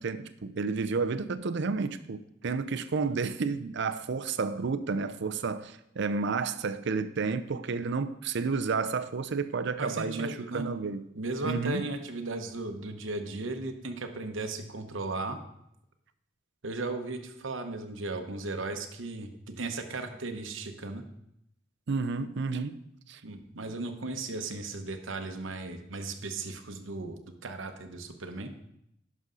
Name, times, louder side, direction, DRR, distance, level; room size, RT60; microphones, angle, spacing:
voice 1, 0.0-11.1 11.4-11.8 21.9-22.8 23.1-23.2, right 4 dB, 65° right, 0.5 m, -31 dB
voice 2, 9.8-10.6 11.1-15.4 16.6-21.0 23.2-28.5, right 2 dB, 80° right, 0.9 m, -36 dB
11.0 x 6.3 x 3.8 m
head